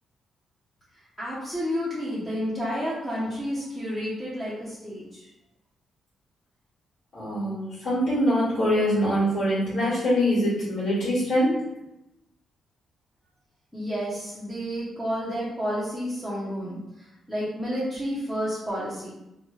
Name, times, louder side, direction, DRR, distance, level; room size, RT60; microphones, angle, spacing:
voice 1, 1.2-5.2 13.7-16.8 17.3-19.1, equal, 5° left, -9 dB, 0.7 m, -30 dB
voice 2, 7.1-11.6, equal, 65° left, -11 dB, 1.4 m, -24 dB
3.0 x 2.2 x 3.1 m, 0.88 s
cardioid pair, 125°, 0 cm